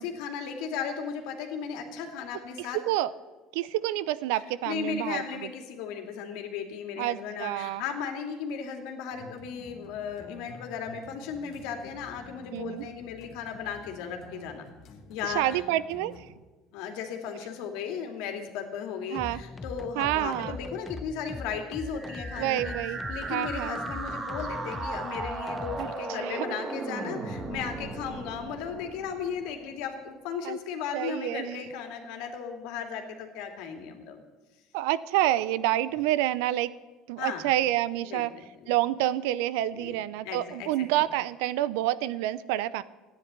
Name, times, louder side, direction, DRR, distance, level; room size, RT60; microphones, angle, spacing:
voice 1, 0.0-2.8 4.7-14.7 15.1-15.6 16.7-22.8 23.1-34.2 37.2-37.5 38.0-38.2 38.6-38.8 39.7-40.0 40.2-40.9, left 6 dB, 75° left, 4 dB, 2.5 m, -36 dB
voice 2, 3.5-5.2 7.0-7.8 12.5-12.8 15.3-16.1 19.1-19.4 20.0-20.6 22.4-23.0 23.3-23.8 25.8-25.9 26.2-26.5 30.4-30.6 30.9-31.6 34.7-36.7 37.1-38.3 38.7-42.8, right 14 dB, 85° right, 17 dB, 0.6 m, -28 dB
sound 1, 9.1-16.3, left 3 dB, 45° left, 2.0 m, -50 dB
sound 2, 19.1-26.0, left 3 dB, 15° left, 0.6 m, -41 dB
sound 3, 21.8-29.7, right 3 dB, 25° right, 1.9 m, -37 dB
14.0 x 10.0 x 9.5 m, 1.2 s
cardioid pair, 125°, 0 cm